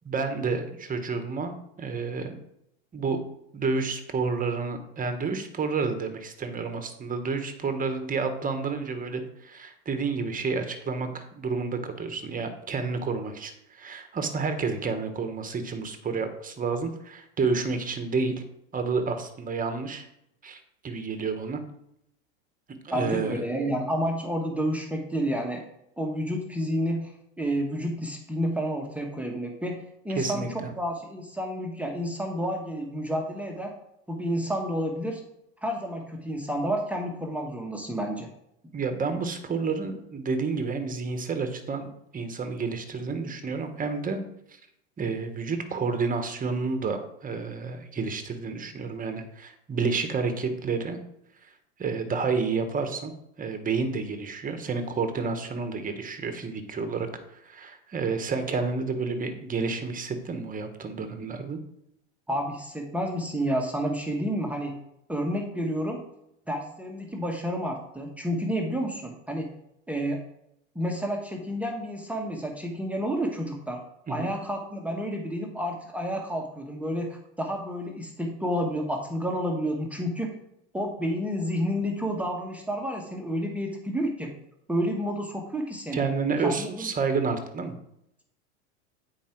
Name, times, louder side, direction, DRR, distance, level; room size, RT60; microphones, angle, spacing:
voice 1, 0.0-2.4 2.9-3.2 3.5-18.3 18.7-20.0 20.4-21.6 22.8-23.4 30.1-30.5 38.7-44.2 45.0-51.0 51.8-61.6 74.1-74.3 85.9-87.8, right 4 dB, 25° right, 8 dB, 1.3 m, -30 dB
voice 2, 22.9-25.6 26.0-27.1 27.4-29.8 30.0-33.7 34.1-35.2 35.6-38.3 62.3-64.8 65.1-66.0 66.5-69.5 69.9-70.2 70.7-73.8 74.1-80.3 80.7-84.3 84.7-86.0 86.4-86.9, equal, 5° right, 1 dB, 1.3 m, -30 dB
9.1 x 4.8 x 4.6 m, 0.79 s
hypercardioid pair, 100°, 35 cm